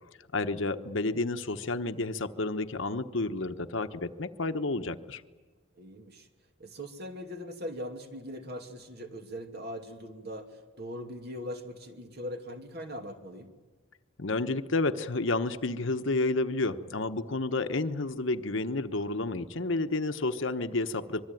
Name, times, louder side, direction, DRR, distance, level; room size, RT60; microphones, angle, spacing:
voice 1, 0.3-5.2 14.2-21.2, left 2 dB, 60° left, 9 dB, 1.1 m, -30 dB
voice 2, 5.8-6.3 6.6-13.5, equal, 50° right, 5 dB, 2.6 m, -40 dB
25.0 x 22.5 x 9.2 m, 1.3 s
head